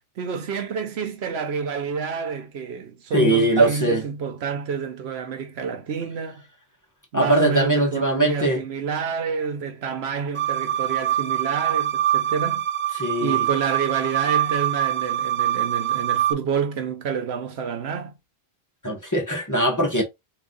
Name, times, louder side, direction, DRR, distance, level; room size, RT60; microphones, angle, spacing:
voice 1, 0.2-6.4 7.1-12.6 13.2-18.2, right 6 dB, 80° right, 1.0 m, -28 dB
voice 2, 3.1-4.0 7.1-8.6 12.9-13.5 18.8-20.0, right 1 dB, 15° left, 1.3 m, -21 dB
sound 1, 10.3-16.3, right 11 dB, 50° right, 0.4 m, -24 dB
3.6 x 2.7 x 3.8 m
omnidirectional pair, 1.1 m